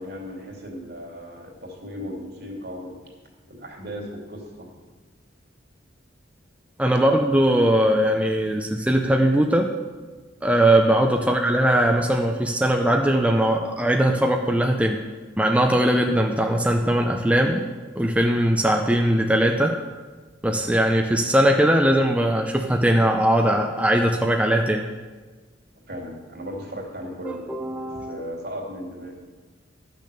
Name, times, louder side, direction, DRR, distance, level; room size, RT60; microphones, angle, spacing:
voice 1, 0.0-3.0 3.5-4.7 25.9-27.5 28.1-29.1, equal, 60° right, 0 dB, 2.6 m, -36 dB
voice 2, 6.8-9.7 10.4-15.0 15.4-17.7 18.0-19.8 20.4-24.9 27.3-28.2, right 1 dB, 5° right, 2 dB, 0.6 m, -20 dB
12.0 x 6.6 x 6.8 m, 1.4 s
head